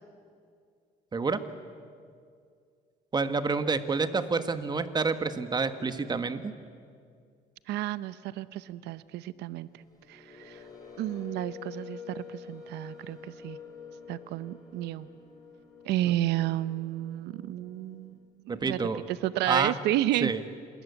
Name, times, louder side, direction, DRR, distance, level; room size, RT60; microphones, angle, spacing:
voice 1, 1.1-1.4 3.1-6.5 18.5-19.0 19.5-19.7 20.2-20.4, right 4 dB, 25° right, 10 dB, 1.5 m, -28 dB
voice 2, 7.7-9.7 10.1-10.6 11.0-13.6 14.1-15.1 15.8-18.2 18.4-18.8 19.1-20.3, right 14 dB, 85° right, 16 dB, 0.7 m, -31 dB
sound 1, 9.7-18.1, left 6 dB, 20° left, 7.6 m, -48 dB
27.0 x 20.5 x 8.3 m, 2.2 s
cardioid pair, 110°, 17 cm